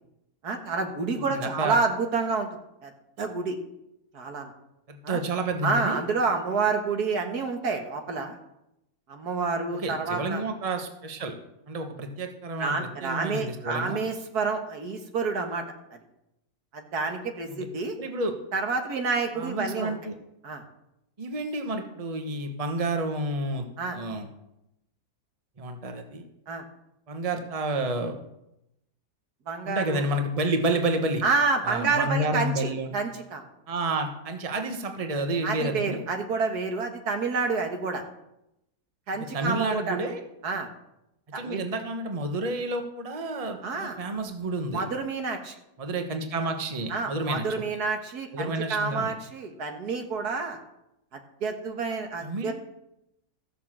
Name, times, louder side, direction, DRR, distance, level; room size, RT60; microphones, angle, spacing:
voice 1, 0.4-2.5 2.8-2.9 3.2-3.6 4.1-4.5 5.0-5.2 5.6-8.4 9.1-10.4 12.6-15.6 16.7-18.0 18.5-20.0 20.4-20.6 23.8-24.0 26.5-26.7 29.5-30.1 31.2-33.5 35.4-38.0 39.1-40.0 40.4-40.7 41.3-41.6 43.6-44.0 44.7-45.5 46.9-50.6 51.1-52.5, right 4 dB, 80° right, 5 dB, 2.0 m, -29 dB
voice 2, 1.2-1.8 4.9-6.0 9.7-11.4 11.7-12.7 13.0-14.0 17.5-17.6 18.0-18.3 19.3-20.1 21.2-23.6 23.9-24.3 25.6-26.2 27.1-28.2 29.6-31.2 31.6-32.9 33.7-36.0 39.3-40.2 41.3-44.8 45.8-47.6 48.3-49.2 52.2-52.5, right 2 dB, 25° right, 5 dB, 1.1 m, -30 dB
14.0 x 6.5 x 7.5 m, 0.86 s
omnidirectional pair, 1.6 m